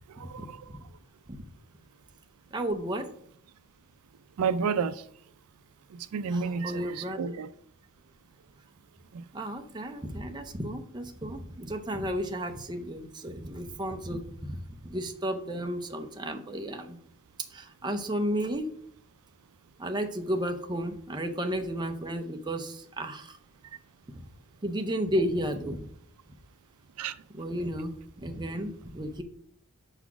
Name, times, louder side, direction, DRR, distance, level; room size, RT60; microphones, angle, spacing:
voice 1, 0.1-0.7 4.4-5.1 5.9-7.5 9.1-9.3 27.0-27.2, right 5 dB, 85° right, 0.4 m, -31 dB
voice 2, 2.5-3.1 6.3-7.4 9.3-17.0 17.5-18.7 19.8-23.4 24.6-25.9 27.3-29.2, equal, 20° right, 0.6 m, -33 dB
5.7 x 4.1 x 6.0 m
head